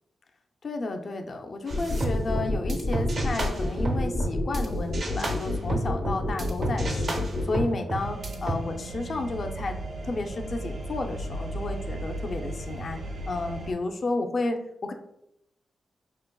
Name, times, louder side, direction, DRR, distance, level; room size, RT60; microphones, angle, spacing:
voice 1, 0.6-7.2 7.5-9.8 10.0-13.0 13.3-14.9, left 3 dB, 45° left, 4 dB, 0.4 m, -32 dB
sound 1, 1.7-7.6, left 2 dB, 70° left, 1.0 m, -28 dB
sound 2, 1.7-4.7 4.9-8.6, right 2 dB, 50° right, 0.6 m, -31 dB
sound 3, 7.9-13.7, right 2 dB, 70° right, 1.0 m, -36 dB
5.7 x 2.8 x 2.2 m, 0.80 s
wide cardioid pair, 145°, 0 cm